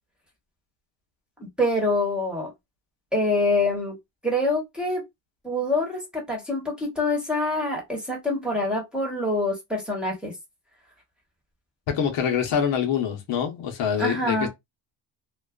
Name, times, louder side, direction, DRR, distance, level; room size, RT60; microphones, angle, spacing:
voice 1, 1.4-2.5 3.1-3.9 4.2-5.0 5.4-10.3 14.0-14.5, left 2 dB, ahead, 1.1 m, -25 dB
voice 2, 11.9-14.5, left 8 dB, 75° left, 0.9 m, -25 dB
2.4 x 2.3 x 2.3 m
cardioid pair, 110°, 44 cm